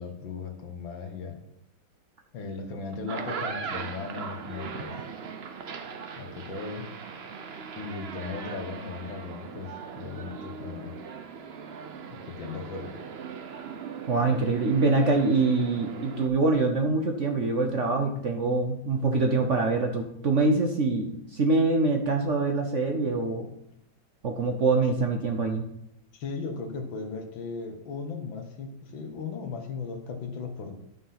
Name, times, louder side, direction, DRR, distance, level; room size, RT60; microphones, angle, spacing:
voice 1, 0.0-1.4 2.3-5.0 6.2-6.9 7.8-11.0 12.2-13.0 26.1-30.7, left 4 dB, 75° left, 6 dB, 2.0 m, -37 dB
sound 1, 2.9-16.3, right 6 dB, 65° right, 0.6 m, -39 dB
voice 2, 14.1-23.5 24.2-25.6, right 3 dB, 50° right, 3 dB, 1.0 m, -24 dB
12.0 x 5.8 x 5.7 m, 0.76 s
omnidirectional pair, 2.1 m